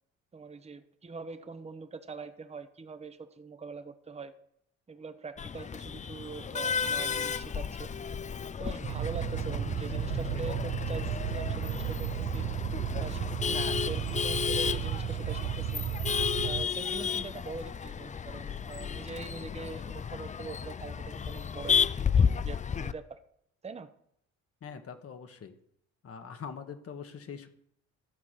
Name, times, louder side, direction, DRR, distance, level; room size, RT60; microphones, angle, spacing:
voice 1, 0.3-4.3 4.9-7.9 8.6-12.5 13.0-15.9 16.4-21.8 22.1-23.2 23.6-23.9, right 4 dB, 20° right, 9 dB, 0.9 m, -43 dB
Male speech man speaking / Laughter / Chatter, 5.4-22.9, left 7 dB, 25° left, 0.4 m, -32 dB
sound 1, 8.8-16.7, right 11 dB, 60° right, 0.7 m, -34 dB
voice 2, 24.6-25.5 26.0-27.5, left 6 dB, 50° left, 7 dB, 1.4 m, -43 dB
13.0 x 4.8 x 7.4 m, 0.70 s
cardioid pair, 90°, 30 cm